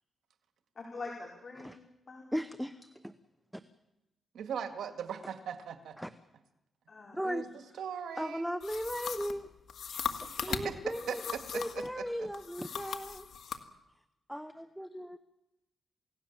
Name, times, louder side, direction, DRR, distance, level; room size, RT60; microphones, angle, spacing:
voice 1, 0.8-1.8 2.1-2.2 6.9-7.2 10.5-10.6, left 3 dB, 45° left, -1 dB, 5.2 m, -44 dB
voice 2, 2.3-3.1 6.0-6.1 7.1-7.4 8.2-9.5 10.2-13.3 14.3-15.2, equal, ahead, 10 dB, 1.0 m, -37 dB
voice 3, 4.3-6.0 7.2-7.5 7.8-8.5 10.2-10.8 11.1-12.3, right 7 dB, 85° right, 7 dB, 2.0 m, -40 dB
sound 1, 8.6-11.9 12.3-13.6, left 7 dB, 75° left, 1.8 m, -39 dB
29.0 x 17.5 x 7.3 m, 0.96 s
cardioid pair, 95°, 0 cm